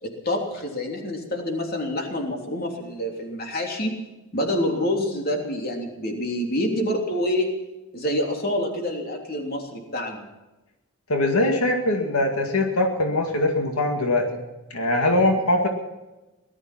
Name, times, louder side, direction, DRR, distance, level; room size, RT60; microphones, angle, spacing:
voice 1, 0.0-4.0 4.3-7.5 7.9-10.2, left 1 dB, 45° left, 2 dB, 3.2 m, -27 dB
voice 2, 11.1-14.4 14.7-15.7, left 1 dB, 85° left, 3 dB, 2.2 m, -22 dB
18.5 x 12.5 x 6.0 m, 1.1 s
head